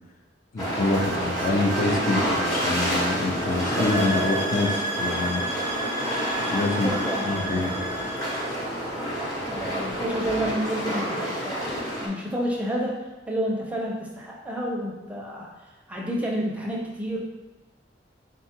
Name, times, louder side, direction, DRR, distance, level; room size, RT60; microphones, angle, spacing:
voice 1, 0.5-5.4 6.5-6.9 7.2-7.7, left 2 dB, 45° left, 1 dB, 0.5 m, -26 dB
sound 1, 0.6-12.1, equal, 20° left, 1.2 m, -28 dB
sound 2, 0.9-4.7, right 3 dB, 65° right, 0.4 m, -37 dB
sound 3, 3.5-8.5, right 2 dB, 80° left, 1.1 m, -33 dB
voice 2, 6.7-8.1 9.5-13.0 13.3-15.5 15.9-17.2, equal, 5° right, -3 dB, 0.5 m, -30 dB
3.9 x 2.3 x 4.4 m, 1.1 s
head